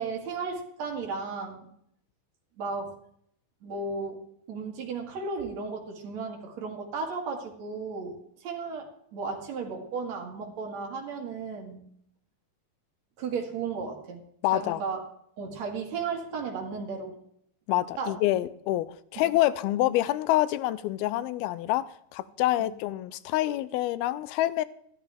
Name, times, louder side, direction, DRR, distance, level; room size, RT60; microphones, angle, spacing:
voice 1, 0.0-1.7 2.6-2.9 3.6-4.2 4.5-11.9 13.2-14.2 14.5-15.0 15.4-17.2 18.0-18.1 22.6-22.7, right 4 dB, 55° right, 2.8 m, -34 dB
voice 2, 14.4-14.8 17.7-24.7, left 15 dB, 90° left, 2.5 m, -27 dB
13.0 x 12.5 x 3.5 m
omnidirectional pair, 4.3 m